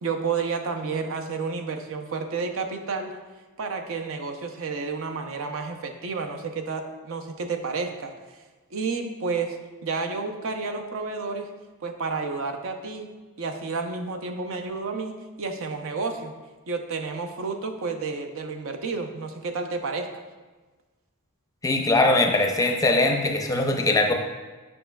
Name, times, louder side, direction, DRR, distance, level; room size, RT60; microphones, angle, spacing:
voice 1, 0.0-3.2 3.6-8.1 8.7-11.5 11.8-13.1 13.4-16.4 16.7-20.1, right 4 dB, 65° right, 5 dB, 0.6 m, -30 dB
voice 2, 21.6-24.1, left 2 dB, 15° left, 3 dB, 0.5 m, -21 dB
7.7 x 5.4 x 2.3 m, 1.3 s
head